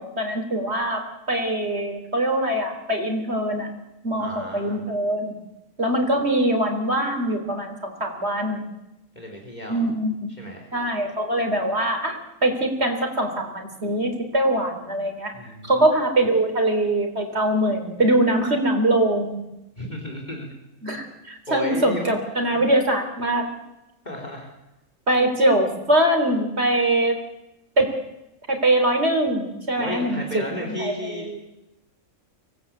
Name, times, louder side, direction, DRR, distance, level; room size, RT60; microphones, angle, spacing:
voice 1, 0.0-3.7 4.0-5.3 5.8-8.6 9.7-10.4 10.7-15.3 15.6-19.4 20.8-23.5 25.1-27.2 27.8-27.9 28.5-31.4, right 1 dB, 50° right, 5 dB, 3.9 m, -23 dB
voice 2, 4.2-4.8 9.2-9.8 10.4-10.7 15.3-15.8 19.8-20.5 21.5-22.6 24.1-24.5 29.8-31.5, left 1 dB, 30° left, 1 dB, 3.8 m, -34 dB
24.5 x 18.5 x 8.5 m, 0.93 s
omnidirectional pair, 1.4 m